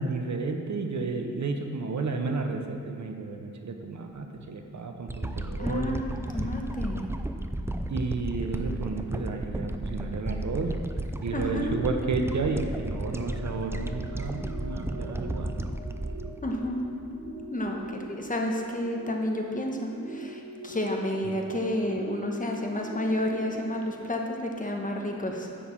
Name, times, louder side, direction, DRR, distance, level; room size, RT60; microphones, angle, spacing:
voice 1, 0.0-6.0 7.9-10.7 11.2-15.5, right 3 dB, 65° right, 4 dB, 0.8 m, -32 dB
sound 1, 5.1-17.4 17.9-18.0, right 1 dB, 10° right, 0.3 m, -34 dB
voice 2, 5.6-7.1 11.3-11.8 16.4-16.9 17.5-25.5, left 1 dB, 25° left, 1 dB, 1.0 m, -30 dB
sound 2, 12.1-24.0, right 2 dB, 40° right, 1.8 m, -43 dB
10.0 x 4.7 x 7.1 m, 2.5 s
wide cardioid pair, 135°, 31 cm